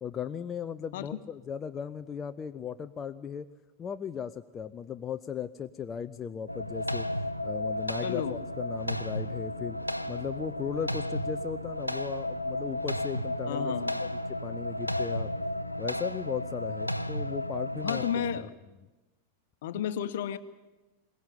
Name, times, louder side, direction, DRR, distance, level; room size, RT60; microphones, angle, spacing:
voice 1, 0.0-3.5 3.8-7.1 7.4-9.8 10.1-13.7 14.0-15.3 15.8-18.3, left 7 dB, 25° left, 9 dB, 0.6 m, -37 dB
sound 1, 6.5-18.4, left 1 dB, 90° left, 0.7 m, -33 dB
sound 2, 7.9-16.5, equal, 5° right, 5.1 m, -57 dB
voice 2, 8.0-8.4 13.5-13.9 17.8-18.5 19.6-20.4, left 9 dB, 55° left, 12 dB, 1.1 m, -32 dB
21.5 x 19.5 x 8.4 m, 1.1 s
figure-of-eight pair, 90°, 0 cm